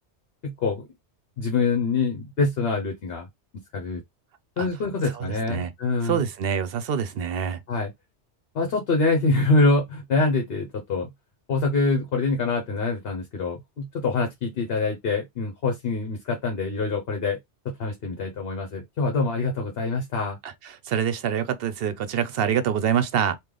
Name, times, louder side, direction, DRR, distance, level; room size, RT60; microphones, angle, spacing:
voice 1, 0.4-0.9 1.4-3.3 3.7-4.0 4.6-6.2 7.7-7.9 8.5-11.1 11.5-17.4 17.8-20.4, left 3 dB, 60° left, 1.1 m, -25 dB
voice 2, 5.0-5.7 6.0-7.6 20.4-23.4, right 8 dB, 65° right, 0.8 m, -26 dB
3.3 x 2.5 x 3.7 m
omnidirectional pair, 1.2 m